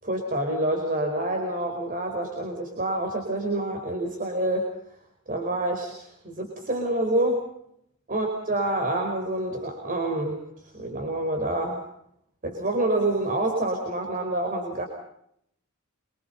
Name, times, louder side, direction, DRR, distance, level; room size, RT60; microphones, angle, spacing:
voice 1, 0.0-4.7 5.3-7.4 8.1-11.8 12.4-14.9, right 1 dB, 40° right, 3 dB, 5.0 m, -27 dB
26.5 x 25.0 x 5.7 m, 0.72 s
head